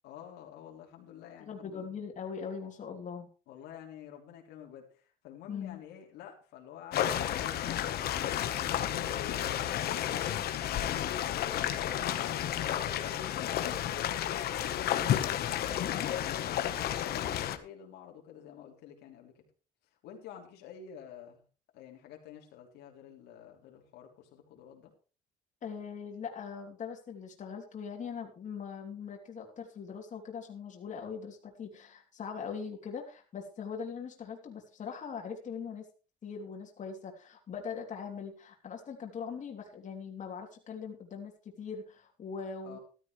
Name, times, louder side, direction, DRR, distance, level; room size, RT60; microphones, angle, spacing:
voice 1, 0.0-1.9 3.5-10.8 11.3-13.6 14.6-19.4 20.0-21.4 21.7-24.9 42.6-42.8, left 9 dB, 85° left, 0 dB, 3.3 m, -49 dB
voice 2, 1.4-3.3 5.5-5.8 25.6-35.9 36.2-42.8, left 6 dB, 45° left, 1 dB, 3.1 m, -41 dB
sound 1, 6.9-17.6, left 11 dB, 70° left, 1.3 m, -32 dB
14.0 x 12.5 x 3.3 m, 0.35 s
cardioid pair, 110°, 17 cm